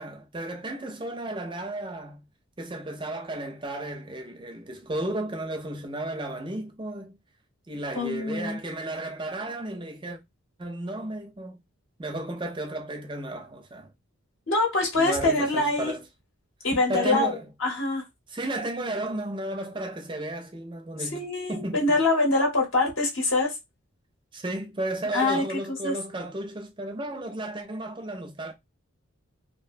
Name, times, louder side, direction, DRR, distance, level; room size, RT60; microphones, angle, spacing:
voice 1, 0.0-2.2 2.6-7.1 7.7-10.2 10.6-11.6 12.0-13.9 15.0-16.0 16.9-17.4 18.3-21.2 21.5-21.9 24.3-28.5, right 1 dB, 20° right, 0.5 m, -33 dB
voice 2, 8.0-8.6 14.5-15.9 16.6-18.0 21.0-23.6 25.1-26.0, left 2 dB, 55° left, 0.8 m, -25 dB
2.4 x 2.2 x 2.4 m
head